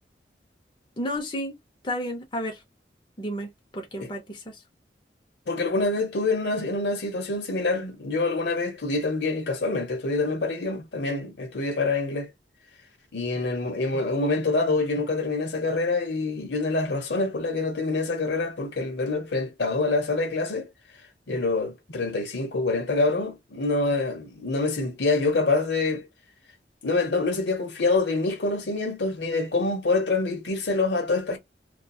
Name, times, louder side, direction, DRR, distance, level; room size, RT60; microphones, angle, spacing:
voice 1, 1.0-1.5 1.8-2.6 3.2-4.6, equal, 25° left, 0.6 m, -32 dB
voice 2, 5.5-12.3 13.1-20.7 21.3-26.1 26.8-31.4, left 3 dB, 85° left, 0.9 m, -26 dB
2.7 x 2.2 x 2.3 m
head